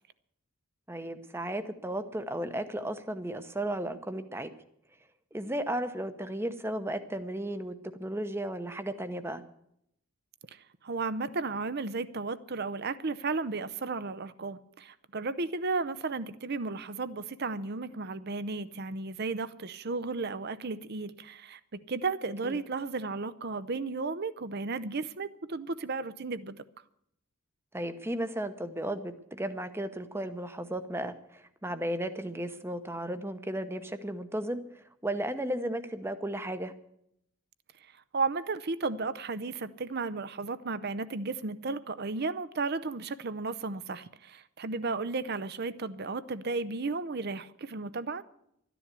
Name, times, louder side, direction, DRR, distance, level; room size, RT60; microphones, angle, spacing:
voice 1, 0.9-4.5 5.3-9.4 22.4-22.6 27.7-36.7, right 1 dB, 10° right, 0.8 m, -34 dB
voice 2, 10.5-26.6 38.1-48.2, right 3 dB, 50° right, 0.7 m, -34 dB
13.0 x 10.0 x 8.2 m
head